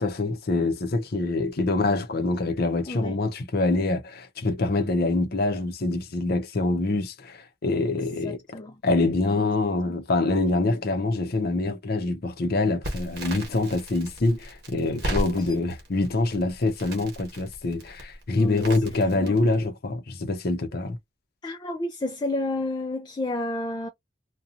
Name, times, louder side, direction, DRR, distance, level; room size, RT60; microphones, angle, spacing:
voice 1, 0.0-8.4 8.8-21.0, left 2 dB, 55° left, 0.6 m, -25 dB
voice 2, 2.9-3.2 7.7-8.8 9.4-9.5 9.9-10.0 15.4-15.5 18.3-18.7 19.1-19.4 21.4-23.9, left 2 dB, 25° left, 0.3 m, -32 dB
Crackle, 12.8-19.7, equal, 60° right, 1.1 m, -36 dB
2.8 x 2.2 x 2.4 m
head